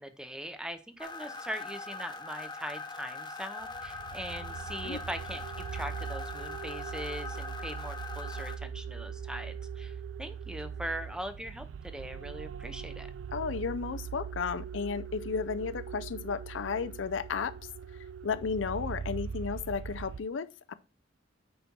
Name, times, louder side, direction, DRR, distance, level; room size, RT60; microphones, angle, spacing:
voice 1, 0.0-13.1, equal, 5° right, 0.7 m, -41 dB
sound 1, 1.0-8.6, left 3 dB, 25° left, 0.9 m, -41 dB
sound 2, 3.6-20.2, right 7 dB, 90° right, 0.4 m, -41 dB
voice 2, 13.3-17.5 18.2-20.7, left 5 dB, 80° left, 0.5 m, -33 dB
9.4 x 4.2 x 4.5 m
head